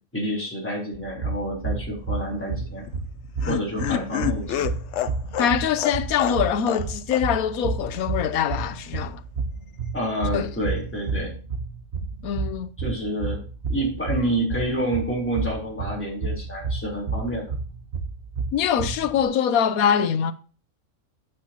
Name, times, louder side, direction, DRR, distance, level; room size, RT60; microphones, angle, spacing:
voice 1, 0.1-2.8 3.5-4.7 9.9-11.3 12.8-13.4 13.7-17.5, right 1 dB, 10° left, 3.6 m, -28 dB
sound 1, 0.9-19.2, right 4 dB, 50° right, 1.2 m, -31 dB
Laughter, 2.8-6.9 7.1-7.2 7.5-7.6, left 11 dB, 65° left, 0.8 m, -29 dB
voice 2, 5.4-9.2 10.3-10.5 12.2-12.7 18.5-20.3, left 8 dB, 85° left, 1.2 m, -23 dB
12.0 x 9.1 x 2.9 m
omnidirectional pair, 1.5 m